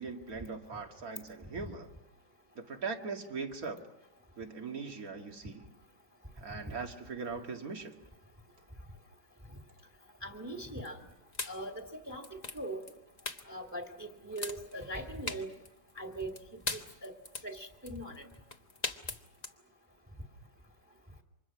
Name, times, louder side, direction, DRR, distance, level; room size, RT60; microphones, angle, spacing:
voice 1, 0.0-1.9 2.6-3.8 4.4-5.7 6.4-8.0, right 4 dB, 55° right, 4 dB, 2.3 m, -40 dB
voice 2, 10.2-11.0 11.5-12.2 12.5-12.8 13.5-15.5 16.0-16.3 16.7-17.1 17.4-18.3, right 1 dB, 10° right, 2 dB, 2.2 m, -40 dB
sound 1, 10.7-19.5, left 3 dB, 25° left, 1.2 m, -41 dB
29.0 x 26.0 x 6.1 m, 0.96 s
omnidirectional pair, 1.9 m